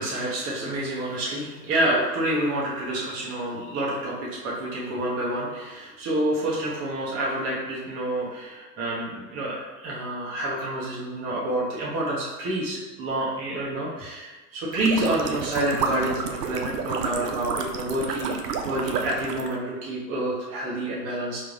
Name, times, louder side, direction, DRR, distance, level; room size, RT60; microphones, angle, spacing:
voice 1, 0.0-18.4 18.6-21.4, right 1 dB, 30° right, -6 dB, 1.1 m, -28 dB
sound 1, 14.7-19.6, right 5 dB, 70° right, 0.6 m, -30 dB
3.5 x 3.3 x 2.6 m, 1.2 s
figure-of-eight pair, 90°, 50 cm